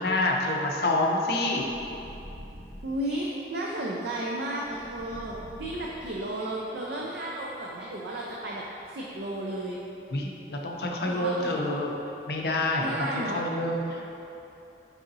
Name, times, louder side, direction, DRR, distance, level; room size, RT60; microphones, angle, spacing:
voice 1, 0.0-1.7 10.1-11.9 12.3-13.0 13.3-14.0, left 2 dB, 65° left, 0 dB, 0.5 m, -27 dB
sound 1, 1.7-3.1 4.6-6.5, equal, 20° right, 0.8 m, -45 dB
voice 2, 2.8-9.8 11.0-11.8 12.8-13.4, right 1 dB, 70° right, -3 dB, 0.4 m, -33 dB
4.7 x 3.8 x 2.6 m, 2.8 s
head